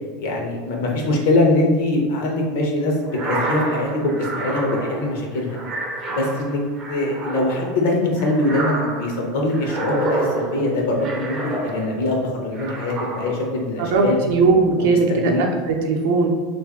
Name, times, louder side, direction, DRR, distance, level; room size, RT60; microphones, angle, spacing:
voice 1, 0.2-5.6 6.1-6.6 6.9-11.4 11.6-14.2 14.8-15.5, left 2 dB, 65° left, 0 dB, 0.8 m, -22 dB
sound 1, 3.1-12.1 12.5-13.6, right 2 dB, 25° right, 0.5 m, -29 dB
voice 2, 13.9-16.3, right 4 dB, 65° right, 1 dB, 0.6 m, -18 dB
3.1 x 2.5 x 3.5 m, 1.3 s
supercardioid pair, 170°, 0 cm